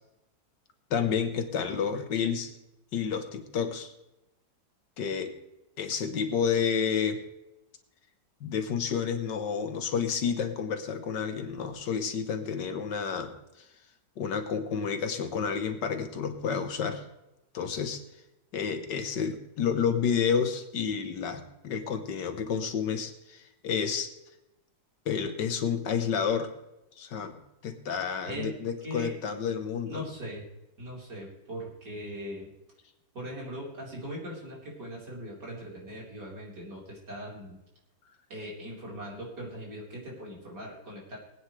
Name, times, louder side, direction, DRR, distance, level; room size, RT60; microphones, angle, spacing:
voice 1, 0.9-2.6 2.9-3.9 5.0-5.3 5.8-7.2 8.4-13.4 14.2-17.0 17.5-18.0 18.5-24.1 25.1-26.5 27.0-27.4 27.6-30.1, left 6 dB, 70° left, 7 dB, 1.8 m, -30 dB
voice 2, 28.8-29.1 29.9-30.4 30.8-32.5 33.1-37.6 38.3-41.2, equal, 65° right, -4 dB, 4.7 m, -40 dB
21.0 x 9.2 x 3.2 m, 0.92 s
omnidirectional pair, 2.0 m